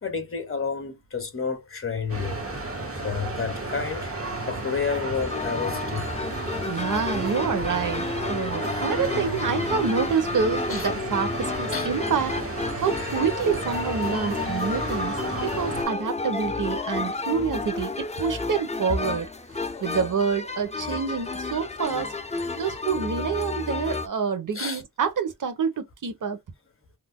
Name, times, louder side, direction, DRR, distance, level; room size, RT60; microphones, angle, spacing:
voice 1, 0.0-2.4 3.0-4.1 4.5-6.0 10.7-10.9 11.7-11.9 17.7-17.8 20.9-21.0 24.5-24.8, left 5 dB, 35° left, 1.3 m, -30 dB
sound 1, 2.1-15.8, right 2 dB, 35° right, 1.4 m, -33 dB
sound 2, 5.2-24.1, left 3 dB, 15° left, 0.6 m, -31 dB
voice 2, 6.7-12.4 12.7-15.2 15.4-19.3 19.8-22.1 22.5-26.4, right 6 dB, 50° right, 1.0 m, -27 dB
3.6 x 2.7 x 2.2 m
cardioid pair, 60°, 39 cm